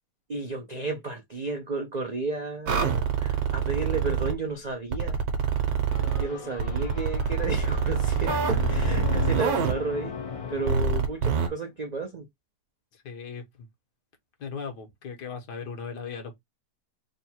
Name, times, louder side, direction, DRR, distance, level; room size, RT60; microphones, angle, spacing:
voice 1, 0.3-5.2 6.2-10.1 10.5-12.2, right 3 dB, 85° right, 0.3 m, -32 dB
sound 1, 2.7-4.3 4.9-6.2 6.6-9.7 10.7-11.5, right 6 dB, 65° right, 1.3 m, -25 dB
sound 2, 5.9-11.5, left 3 dB, 50° left, 0.4 m, -36 dB
voice 2, 12.9-13.7 14.4-16.4, left 5 dB, 75° left, 1.7 m, -38 dB
3.8 x 2.3 x 4.3 m
omnidirectional pair, 1.8 m